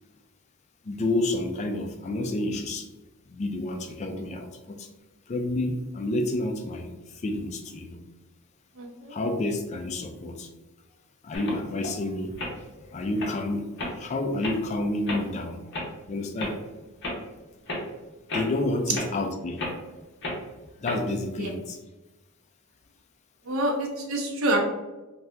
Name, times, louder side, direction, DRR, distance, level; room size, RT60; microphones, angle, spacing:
voice 1, 0.8-2.9 3.3-4.9 5.3-8.0 9.1-10.5 11.2-12.4 12.8-15.6 16.1-16.6 18.3-19.6 20.8-21.8, left 2 dB, 30° left, 4 dB, 0.3 m, -29 dB
voice 2, 8.8-9.1 21.4-21.5 23.5-24.6, right 1 dB, 65° right, 1 dB, 0.7 m, -27 dB
sound 1, 11.3-11.9 12.3-12.5 13.0-13.3 13.8-14.0 14.4-14.6 15.1-15.2 15.7-15.9 16.4-16.5 17.0-17.2 17.7-17.8 18.3-18.6 18.9-19.1 19.6-19.7 20.2-20.4 20.9-21.0, left 1 dB, 50° left, 0.8 m, -32 dB
2.8 x 2.3 x 3.3 m, 1.1 s
head